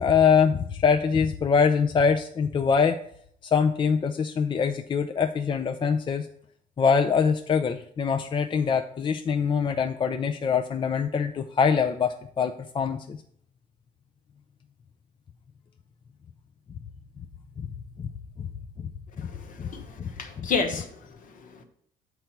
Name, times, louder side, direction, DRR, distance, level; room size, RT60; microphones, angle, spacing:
voice 1, 0.0-3.0 3.4-6.3 6.8-13.2 17.6-17.7 18.0-18.1 18.4-18.5 18.8-18.9 19.2-19.3 19.6-19.7 20.0-20.1 20.4-20.5, left 6 dB, 30° left, 7 dB, 0.5 m, -24 dB
voice 2, 19.2-21.6, left 5 dB, 50° left, 7 dB, 1.2 m, -32 dB
6.8 x 4.5 x 6.0 m, 0.65 s
cardioid pair, 110°, 17 cm